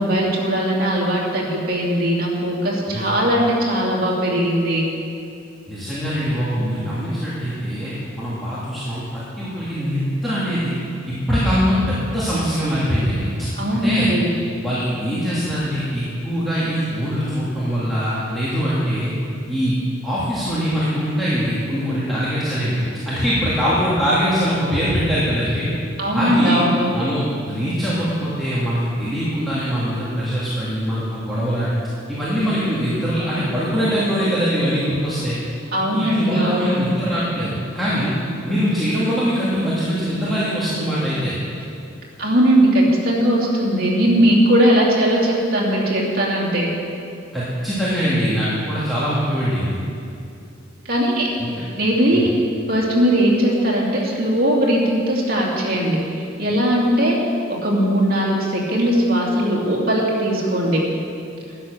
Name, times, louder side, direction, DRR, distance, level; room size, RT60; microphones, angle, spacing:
voice 1, 0.0-4.8 13.6-14.3 26.0-27.0 35.7-36.8 42.2-46.7 50.8-51.3 51.8-52.3 52.7-57.2 57.5-60.8, equal, 50° right, -4 dB, 2.8 m, -19 dB
voice 2, 5.7-10.7 11.1-14.1 14.6-19.1 19.5-19.8 20.0-25.7 26.1-26.6 26.9-31.7 32.1-35.4 35.9-38.1 38.4-41.4 47.3-49.8 51.4-51.5 52.1-52.3, equal, ahead, -11 dB, 2.2 m, -22 dB
11.5 x 9.8 x 6.6 m, 2.5 s
head